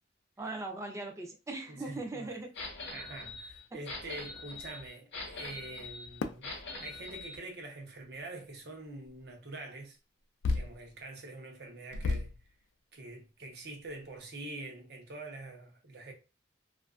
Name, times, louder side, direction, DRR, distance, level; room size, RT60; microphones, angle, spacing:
voice 1, 0.4-2.5, right 2 dB, 15° right, 0.4 m, -39 dB
voice 2, 1.7-2.4 2.9-6.5 6.8-10.0 10.5-12.3 12.9-16.1, right 2 dB, 60° right, 0.7 m, -45 dB
sound 1, 2.5-7.4, left 2 dB, 65° left, 0.7 m, -43 dB
sound 2, 6.2-6.5 7.7-7.8 9.0-9.2 10.4-10.9 11.3-11.4 11.9-12.5 13.1-13.2 13.5-13.6 13.9-14.2, left 3 dB, 90° left, 0.3 m, -33 dB
2.4 x 2.3 x 2.3 m
head